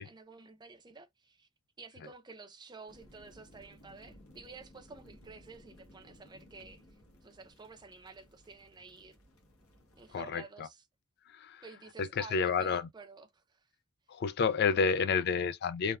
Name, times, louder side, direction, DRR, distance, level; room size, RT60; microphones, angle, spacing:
voice 1, 0.0-1.5 1.8-6.8 7.2-9.2 10.0-10.8 11.6-13.7, right 4 dB, 20° right, 0.5 m, -51 dB
sound 1, 2.9-10.3, left 1 dB, 75° left, 1.0 m, -59 dB
voice 2, 10.1-10.7 11.3-11.6 12.0-12.9 14.1-16.0, left 5 dB, 50° left, 0.3 m, -30 dB
3.3 x 2.1 x 2.3 m
head